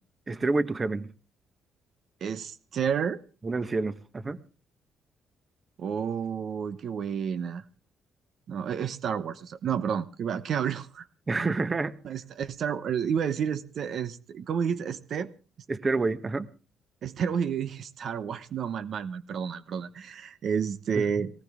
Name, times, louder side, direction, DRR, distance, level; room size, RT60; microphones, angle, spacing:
voice 1, 0.3-1.1 3.4-4.4 11.3-11.9 15.7-16.5, right 3 dB, 30° right, 1.1 m, -28 dB
voice 2, 2.2-3.2 5.8-7.6 8.5-11.1 12.0-15.3 17.0-21.3, right 7 dB, 65° right, 0.9 m, -30 dB
18.5 x 18.5 x 3.6 m
cardioid pair, 90°, 0 cm